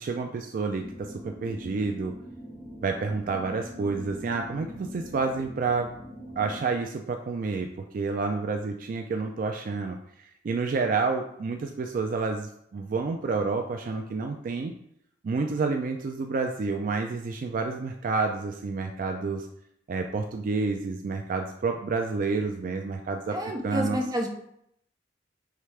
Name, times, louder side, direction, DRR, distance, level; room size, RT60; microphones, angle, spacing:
voice 1, 0.0-2.1 2.8-5.9 6.4-14.7 15.2-19.5 19.9-23.4 23.6-24.0, right 4 dB, 50° right, 4 dB, 0.3 m, -29 dB
sound 1, 0.8-6.6, equal, 30° left, 1.3 m, -43 dB
voice 2, 23.3-24.3, equal, 20° right, 1 dB, 0.6 m, -29 dB
4.8 x 3.3 x 3.2 m, 0.74 s
head